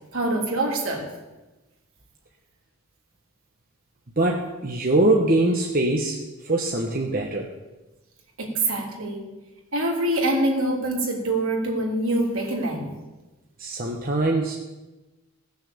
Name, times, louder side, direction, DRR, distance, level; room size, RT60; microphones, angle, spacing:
voice 1, 0.1-1.1 8.4-9.2 9.7-12.9, right 1 dB, 70° right, -1 dB, 3.0 m, -25 dB
voice 2, 4.2-7.5 13.6-14.6, right 2 dB, 40° right, 0 dB, 1.1 m, -23 dB
16.5 x 6.6 x 7.0 m, 1.1 s
head